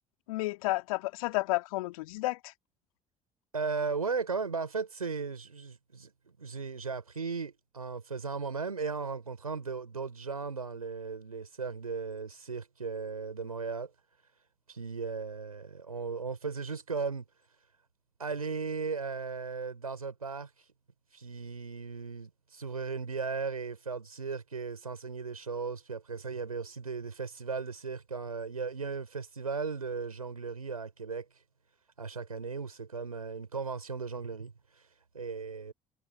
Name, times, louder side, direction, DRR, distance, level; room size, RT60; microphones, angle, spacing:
voice 1, 0.3-2.5, left 20 dB, 75° left, 2.1 m, -31 dB
voice 2, 3.5-13.9 14.7-17.3 18.2-20.5 21.1-31.3 32.0-34.5 35.1-35.7, right 5 dB, 90° right, 5.4 m, -36 dB
figure-of-eight pair, 50°, 18 cm